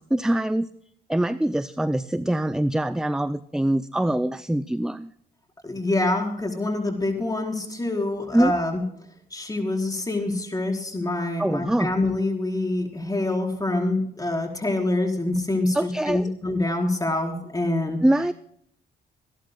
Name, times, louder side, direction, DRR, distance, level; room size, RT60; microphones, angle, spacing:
voice 1, 0.1-0.7 1.1-5.1 8.3-8.5 11.4-11.9 15.7-16.3 18.0-18.3, right 1 dB, 5° right, 13 dB, 0.5 m, -23 dB
voice 2, 5.6-8.8 9.3-18.0, left 2 dB, 20° left, 1 dB, 4.5 m, -26 dB
27.0 x 11.5 x 2.3 m, 0.70 s
cardioid pair, 90°, 20 cm